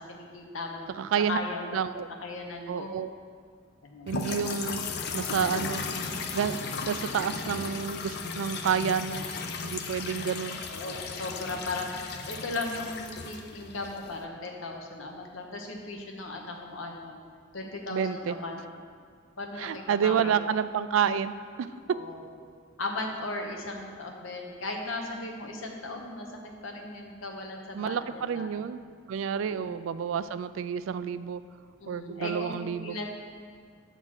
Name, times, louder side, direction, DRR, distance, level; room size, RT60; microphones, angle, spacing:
voice 1, 0.1-0.9 1.3-1.8 2.2-3.0 3.8-4.2 10.7-17.2 17.5-18.6 19.4-20.3 21.9-22.2 22.8-26.3 26.6-28.5 29.3-29.8 31.8-33.1, left 2 dB, 80° left, 1 dB, 1.0 m, -37 dB
voice 2, 1.0-1.4 1.7-2.1 2.7-3.1 4.1-5.8 6.1-9.2 9.6-10.6 17.9-18.3 19.6-21.7 27.7-28.8 29.1-31.4 31.9-33.1, right 7 dB, 75° right, 13 dB, 0.3 m, -29 dB
sound 1, 4.1-14.2, left 4 dB, 55° left, 0.5 m, -36 dB
7.4 x 3.9 x 6.3 m, 2.1 s
head